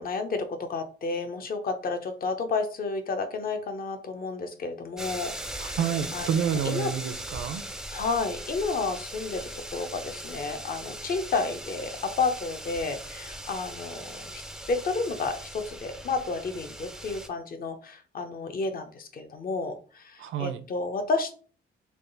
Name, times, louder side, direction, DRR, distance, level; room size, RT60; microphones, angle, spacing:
voice 1, 0.0-5.8 6.1-6.9 7.9-14.4 14.7-21.3, left 4 dB, 45° left, 0.7 m, -31 dB
sound 1, 5.0-17.3, right 1 dB, 5° right, 0.4 m, -39 dB
voice 2, 5.6-7.6 20.2-20.6, right 8 dB, 75° right, 0.5 m, -29 dB
3.5 x 2.3 x 3.9 m
cardioid pair, 125°, 20 cm